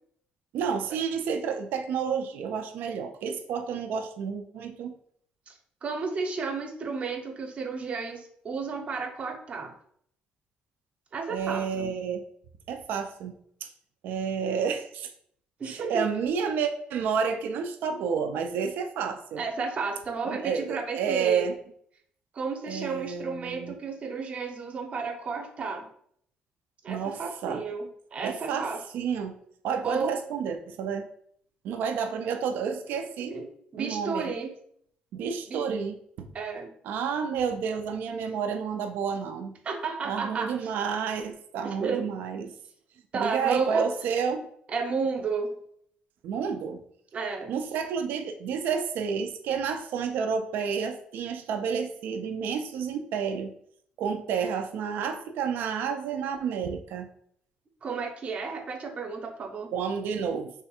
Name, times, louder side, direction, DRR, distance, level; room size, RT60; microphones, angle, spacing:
voice 1, 0.5-4.9 11.3-12.2 12.7-13.7 14.0-15.1 15.6-19.4 20.2-21.5 22.7-23.8 26.9-27.6 28.2-29.3 29.6-31.1 31.6-33.4 33.8-34.3 35.1-36.3 36.8-39.6 40.0-42.5 43.1-44.5 46.2-46.8 47.5-53.5 54.0-57.1 59.7-60.5, right 6 dB, 75° right, 6 dB, 0.4 m, -30 dB
voice 2, 5.8-9.7 11.1-11.9 15.6-16.0 19.4-21.5 22.3-25.9 26.8-28.8 29.8-30.1 33.3-33.5 33.7-34.5 35.5-35.6 36.3-36.7 39.6-40.7 41.6-42.0 43.1-43.9 44.7-45.5 47.1-47.5 57.8-59.7, right 4 dB, 40° right, 3 dB, 0.7 m, -32 dB
3.3 x 2.3 x 4.2 m, 0.65 s
cardioid pair, 120°, 3 cm